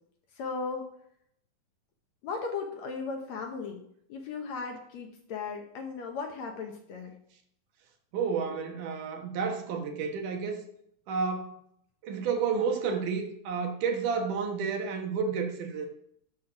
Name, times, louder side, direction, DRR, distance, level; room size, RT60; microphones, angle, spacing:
voice 1, 0.4-0.9 2.2-3.8 4.1-7.2, left 4 dB, 65° left, 2.1 m, -36 dB
voice 2, 8.1-10.6 11.1-11.5 12.0-15.9, right 5 dB, 70° right, 2.8 m, -30 dB
10.0 x 7.2 x 5.9 m
omnidirectional pair, 3.9 m